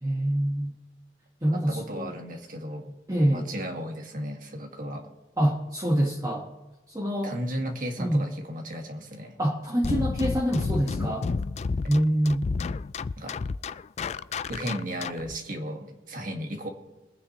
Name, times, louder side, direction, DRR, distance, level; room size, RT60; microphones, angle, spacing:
voice 1, 0.0-0.7 1.4-2.2 3.1-3.5 5.4-6.5 6.9-7.4 8.0-8.2 9.4-11.3 11.9-12.5, right 1 dB, 20° right, -3 dB, 1.4 m, -25 dB
voice 2, 1.5-3.0 3.3-5.1 7.2-9.4 13.2-13.4 14.5-16.7, equal, 50° right, 3 dB, 2.0 m, -35 dB
sound 1, 9.8-15.4, left 4 dB, 35° left, 0.3 m, -30 dB
23.5 x 9.6 x 3.2 m, 1.1 s
head